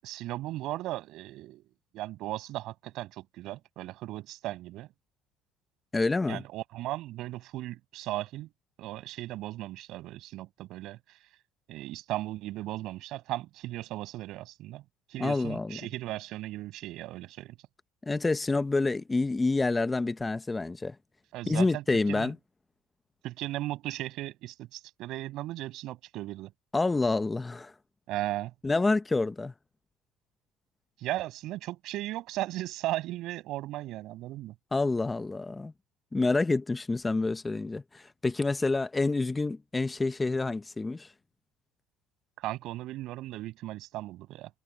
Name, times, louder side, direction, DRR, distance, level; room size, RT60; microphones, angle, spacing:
voice 1, 0.0-1.6 1.9-4.9 6.3-8.5 8.8-11.0 11.7-14.8 15.1-17.5 21.3-21.8 22.1-22.3 23.2-26.5 28.1-28.5 31.0-34.5 42.4-44.5, right 16 dB, 65° right, 7.7 m, -36 dB
voice 2, 5.9-6.4 15.2-15.9 18.0-21.0 21.5-22.3 26.7-27.7 28.6-29.5 34.7-35.7 36.1-41.1, left 3 dB, 15° left, 0.9 m, -28 dB
supercardioid pair, 100°, 0 cm